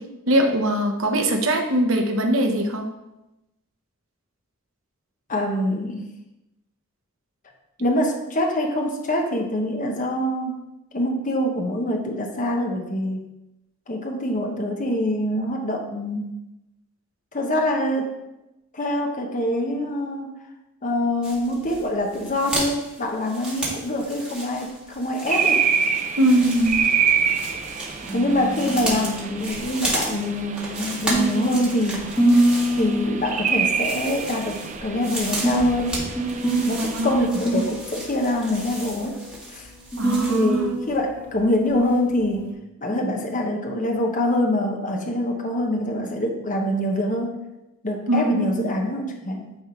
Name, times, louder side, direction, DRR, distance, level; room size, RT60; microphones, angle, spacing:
voice 1, 0.3-2.9 26.1-26.8 36.8-37.7 40.0-40.6 48.1-48.7, right 1 dB, 75° right, 4 dB, 1.0 m, -21 dB
voice 2, 5.3-6.1 7.8-10.6 10.9-13.3 13.9-16.3 17.3-18.1 18.7-20.3 20.8-25.6 28.1-32.1 32.8-36.0 36.7-39.2 39.5-39.7 40.3-42.5 42.8-47.4 47.8-49.5, left 1 dB, 40° left, 2 dB, 0.9 m, -25 dB
sound 1, 21.2-40.7 40.9-41.0, right 1 dB, 5° right, 1.9 m, -34 dB
sound 2, 25.3-37.3, right 6 dB, 35° right, 0.5 m, -27 dB
sound 3, 26.4-42.5, right 2 dB, 10° left, 1.9 m, -27 dB
9.7 x 3.7 x 4.4 m, 0.94 s
head